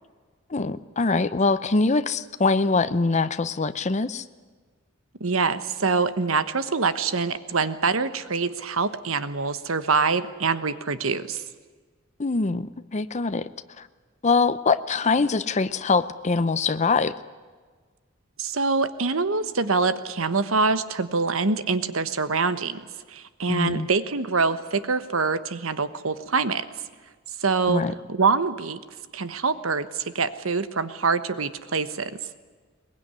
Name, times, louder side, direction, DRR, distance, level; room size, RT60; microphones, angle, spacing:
voice 1, 0.5-4.2 12.2-12.7 12.9-13.5 13.8-13.9 14.2-17.1 23.5-23.9 27.7-27.9, left 4 dB, 35° left, 12 dB, 0.7 m, -23 dB
voice 2, 5.2-11.4 18.4-26.6 27.4-27.8 28.1-28.8 29.1-32.2, right 4 dB, 80° right, 13 dB, 1.2 m, -25 dB
22.5 x 19.5 x 9.7 m, 1.5 s
head